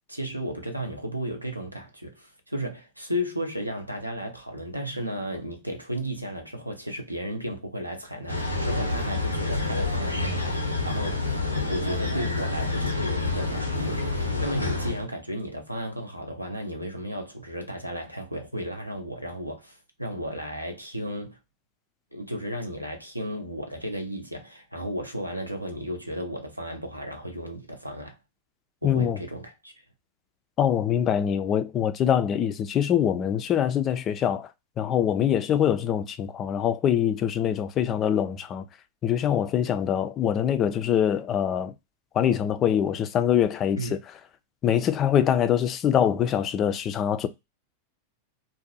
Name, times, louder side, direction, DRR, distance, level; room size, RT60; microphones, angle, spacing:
voice 1, 0.1-11.3 11.7-21.4 22.1-28.2 28.8-29.7 43.8-44.0, equal, 85° right, 0.6 m, -34 dB
sound 1, 8.3-15.0, left 3 dB, 90° left, 0.5 m, -28 dB
voice 2, 28.8-29.2 30.6-34.5 34.8-38.6 39.0-41.7 42.1-43.8 44.6-47.3, left 9 dB, 30° left, 0.3 m, -24 dB
2.6 x 2.0 x 2.6 m
figure-of-eight pair, 90°, 0 cm